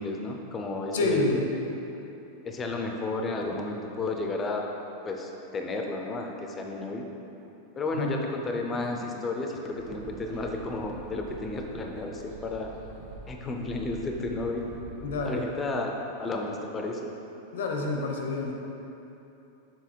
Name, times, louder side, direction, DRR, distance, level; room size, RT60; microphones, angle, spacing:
voice 1, 0.0-1.3 2.4-4.6 5.0-7.1 7.8-8.2 8.4-12.7 13.3-14.6 15.3-15.9 16.2-17.1, left 2 dB, 15° left, 2 dB, 0.4 m, -32 dB
voice 2, 0.9-1.4 7.9-8.2 8.7-9.1 15.0-15.5 17.5-18.5, left 2 dB, 80° left, 1 dB, 0.9 m, -28 dB
sound 1, 9.7-15.2, right 3 dB, 65° right, 1.0 m, -46 dB
7.0 x 3.7 x 4.4 m, 3.0 s
supercardioid pair, 170°, 0 cm